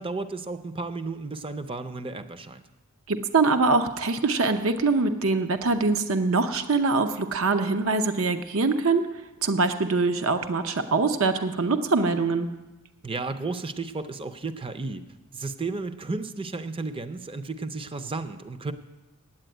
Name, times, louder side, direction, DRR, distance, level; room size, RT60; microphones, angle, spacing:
voice 1, 0.0-2.6 13.0-15.0 15.3-18.7, right 3 dB, 25° right, 11 dB, 0.5 m, -33 dB
voice 2, 3.1-9.1 9.4-12.5, right 3 dB, 65° right, 8 dB, 0.7 m, -23 dB
8.8 x 8.6 x 9.1 m, 1.1 s
head